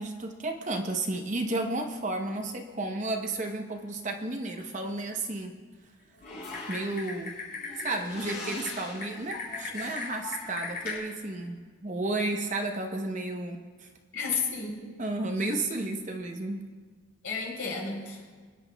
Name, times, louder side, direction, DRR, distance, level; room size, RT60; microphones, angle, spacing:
voice 1, 0.0-5.5 6.7-7.3 7.8-13.9 15.0-16.6, right 2 dB, 35° right, 4 dB, 0.8 m, -32 dB
Typing, 6.2-11.0, left 4 dB, 45° left, 3.8 m, -38 dB
voice 2, 14.1-14.8 17.2-18.3, left 5 dB, 80° left, -2 dB, 3.7 m, -32 dB
23.5 x 10.0 x 2.3 m, 1.5 s
head